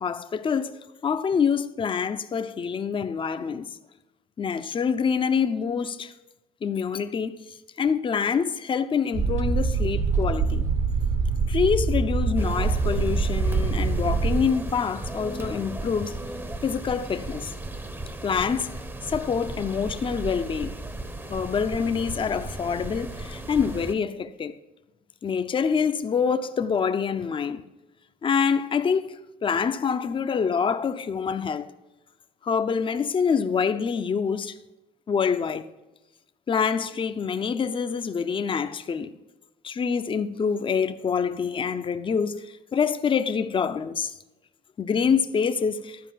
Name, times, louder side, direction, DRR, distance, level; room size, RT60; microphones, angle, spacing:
voice 1, 0.0-3.7 4.4-6.1 6.6-10.6 11.5-16.2 16.6-17.5 18.2-18.7 19.1-20.7 21.3-24.6 25.2-27.6 28.2-31.7 32.4-34.5 35.1-35.7 36.5-39.1 39.6-44.1 44.8-46.0, left 6 dB, 30° left, 0.7 m, -26 dB
sound 1, 9.1-14.5, right 4 dB, 40° right, 1.0 m, -24 dB
sound 2, 12.4-23.9, right 2 dB, 15° right, 0.9 m, -36 dB
12.5 x 5.0 x 7.6 m
cardioid pair, 110°, 17 cm